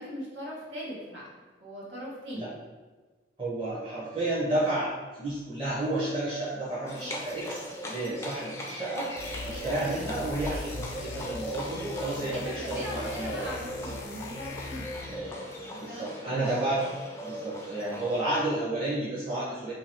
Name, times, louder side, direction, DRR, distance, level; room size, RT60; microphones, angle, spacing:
voice 1, 0.0-2.5 11.9-16.4 16.8-17.0, equal, 90° right, -5 dB, 1.3 m, -41 dB
voice 2, 3.4-9.1 9.5-13.5 15.1-15.4 15.7-16.8 17.2-19.7, right 2 dB, 30° right, -9 dB, 0.9 m, -31 dB
Livestock farm animals working animals, 6.9-18.2, equal, 15° left, 0.4 m, -39 dB
sound 1, 9.2-15.3, left 3 dB, 75° left, 0.5 m, -40 dB
2.9 x 2.8 x 4.3 m, 1.3 s
head